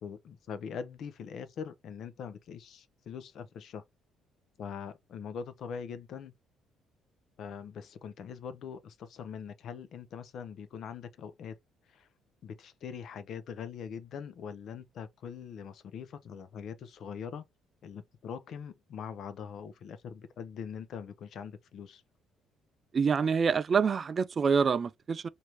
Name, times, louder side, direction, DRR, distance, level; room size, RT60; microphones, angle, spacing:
voice 1, 0.0-3.8 4.6-6.3 7.4-11.6 11.9-12.1 12.4-17.5 17.8-22.0, left 7 dB, 65° left, 0.6 m, -42 dB
voice 2, 22.9-25.3, right 6 dB, 40° right, 0.3 m, -26 dB
3.0 x 2.6 x 4.4 m
cardioid pair, 85°, 0 cm